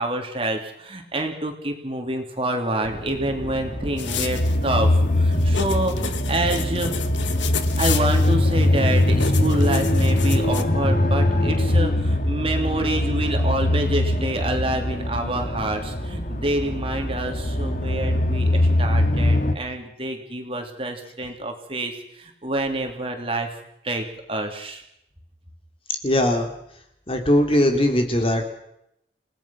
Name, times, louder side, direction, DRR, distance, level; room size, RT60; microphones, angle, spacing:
voice 1, 0.0-6.9 7.8-23.5 23.8-24.8, right 1 dB, 30° right, 3 dB, 3.1 m, -27 dB
sound 1, 2.9-19.5, left 1 dB, 45° left, 2.0 m, -22 dB
sound 2, 4.0-10.6, left 7 dB, 90° left, 1.7 m, -33 dB
voice 2, 26.0-26.5 27.1-28.5, left 1 dB, 30° left, 4 dB, 2.9 m, -20 dB
29.0 x 18.0 x 6.0 m, 0.78 s
head